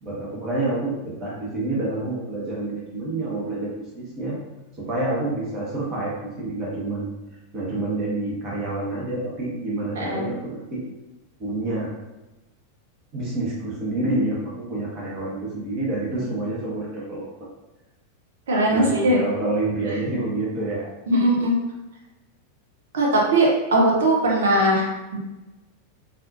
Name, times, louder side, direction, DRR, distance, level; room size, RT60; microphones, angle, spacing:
voice 1, 0.0-4.4 4.8-7.1 7.5-10.8 11.4-11.9 13.1-17.3 18.7-20.9, right 2 dB, 35° right, -6 dB, 1.0 m, -28 dB
voice 2, 18.5-19.2 21.1-21.5 22.9-25.2, right 1 dB, 60° right, -2 dB, 0.9 m, -20 dB
4.0 x 2.5 x 2.7 m, 1.1 s
figure-of-eight pair, 90°, 0 cm